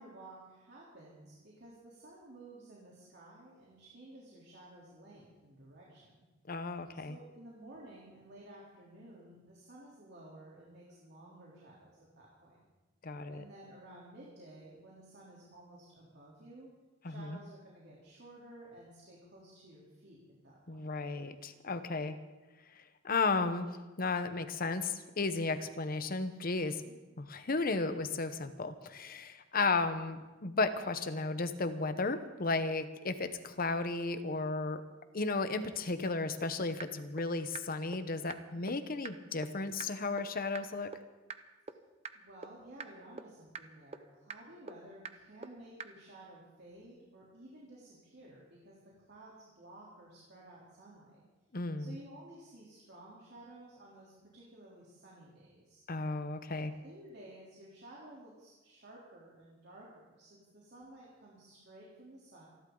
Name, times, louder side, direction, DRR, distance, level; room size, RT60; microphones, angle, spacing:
voice 1, 0.0-6.2 7.1-12.6 13.3-16.7 17.0-20.9 26.8-27.0 42.1-48.8 49.1-51.2 51.8-55.8 56.5-62.5, right 1 dB, 60° right, -5 dB, 3.4 m, -54 dB
voice 2, 6.5-7.2 13.0-13.4 17.0-17.4 20.7-22.2 23.0-23.7 24.0-26.8 27.2-34.8 35.1-40.9 51.5-52.0 55.9-56.7, left 3 dB, 50° left, 10 dB, 1.0 m, -34 dB
sound 1, 36.1-36.2 36.4-36.5 36.8-36.9 37.2-37.3 37.5-37.6 37.9-38.0 38.3-38.4 38.7-38.8 39.0-39.1 39.4-39.5 39.8-39.9 40.2-40.3 40.5-40.6 40.9-41.0 41.3-41.4 41.7-41.8 42.0-42.1 42.4-42.5 42.8-42.9 43.2-43.3 43.5-43.6 43.9-44.0 44.3-44.4 44.7-44.8 45.0-45.1 45.4-45.5 45.8-45.9, right 5 dB, 35° right, 0.7 m, -42 dB
27.5 x 12.0 x 3.9 m, 1.1 s
head